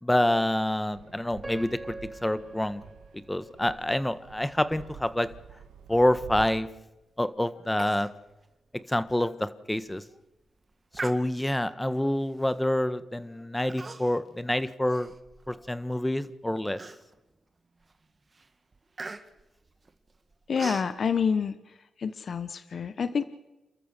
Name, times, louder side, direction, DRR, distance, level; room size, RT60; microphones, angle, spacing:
voice 1, 0.0-1.9 2.2-2.8 3.3-5.3 5.9-6.7 7.2-8.1 8.9-10.0 11.0-15.1 15.5-16.8, left 1 dB, 10° left, 13 dB, 1.5 m, -27 dB
Fixed-wing aircraft airplane, 0.9-6.4, right 8 dB, 85° right, 1.9 m, -48 dB
Piano, 1.4-4.4 5.0-5.1 5.8-6.0, right 2 dB, 15° right, 2.6 m, -45 dB
Human voice, 7.8-8.1 8.4-8.5 9.0-9.2 9.7-10.0 10.9-11.7 12.4-12.7 13.7-14.3 14.7-15.7 16.2-16.3 16.8-17.3 17.8-18.0 18.3-20.9, right 3 dB, 35° right, 1.9 m, -41 dB
voice 2, 20.5-21.5 22.0-23.2, left 6 dB, 60° left, 13 dB, 1.0 m, -27 dB
29.0 x 13.5 x 6.7 m, 1.0 s
supercardioid pair, 55°, 0 cm